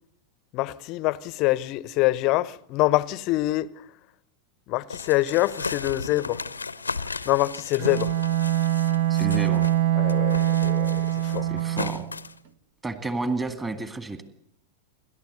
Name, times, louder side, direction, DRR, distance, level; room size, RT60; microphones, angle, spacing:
voice 1, 0.5-3.7 4.7-6.4 7.3-8.1 10.0-11.4, left 18 dB, 40° left, 0.8 m, -25 dB
sound 1, 4.9-9.8 10.1-12.4, left 4 dB, 80° left, 0.8 m, -35 dB
Bowed string instrument, 7.8-12.1, right 13 dB, 45° right, 1.4 m, -23 dB
voice 2, 9.1-9.7 11.5-12.1 12.8-14.2, right 2 dB, 15° right, 2.1 m, -31 dB
28.0 x 12.5 x 8.0 m
figure-of-eight pair, 90°, 0 cm